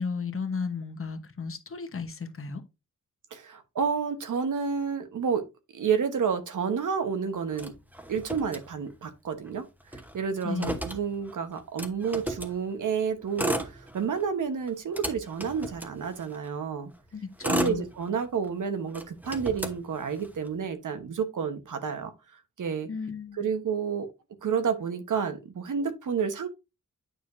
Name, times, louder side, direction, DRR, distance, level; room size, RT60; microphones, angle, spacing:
voice 1, 0.0-2.6 10.4-10.8 17.1-17.8 22.9-23.5, left 5 dB, 45° left, 1.1 m, -34 dB
voice 2, 3.3-5.5 5.7-7.7 8.1-9.7 9.9-16.9 17.4-22.9 23.4-24.1 24.4-26.5, right 6 dB, 85° right, 1.1 m, -30 dB
Motor vehicle (road), 7.5-9.2 9.5-9.6 9.8-12.6 13.2-14.3 14.7-16.5 17.1-18.5 18.9-20.5, right 1 dB, 5° right, 1.0 m, -34 dB
9.1 x 4.7 x 2.6 m
wide cardioid pair, 115°, 30 cm